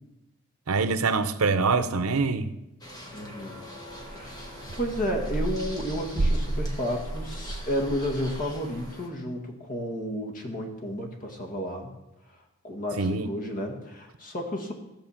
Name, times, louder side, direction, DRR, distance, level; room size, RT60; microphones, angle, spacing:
voice 1, 0.7-2.5 13.0-13.3, right 4 dB, 90° right, 0.7 m, -24 dB
sound 1, 2.8-9.1, left 1 dB, 20° left, 1.8 m, -44 dB
voice 2, 3.1-3.6 4.1-11.9 12.3-12.4 12.6-14.7, equal, 40° left, 1.9 m, -32 dB
sound 2, 3.9-8.9, right 2 dB, 45° right, 0.6 m, -32 dB
15.0 x 5.2 x 7.2 m
head